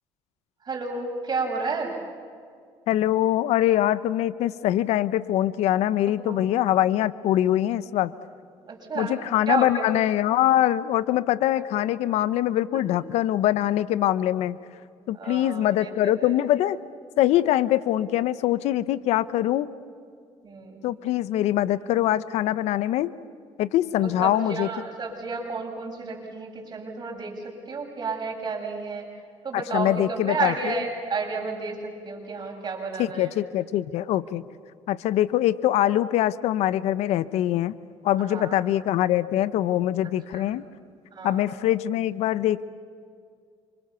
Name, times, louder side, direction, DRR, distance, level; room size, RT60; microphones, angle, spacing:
voice 1, 0.6-1.9 6.1-6.4 8.7-9.2 9.5-9.8 15.1-16.3 20.4-20.8 24.2-29.1 29.4-33.3 38.2-38.6 40.3-40.4 41.1-41.5, right 4 dB, 40° right, 0 dB, 7.9 m, -31 dB
voice 2, 2.9-8.1 8.9-14.6 15.1-16.8 17.2-19.7 20.8-23.1 23.6-24.7 29.5-30.7 33.0-34.4 34.9-37.7 38.0-40.6 41.2-42.6, left 13 dB, 80° left, 16 dB, 0.9 m, -23 dB
29.0 x 26.5 x 7.0 m, 2.3 s
cardioid pair, 85°, 11 cm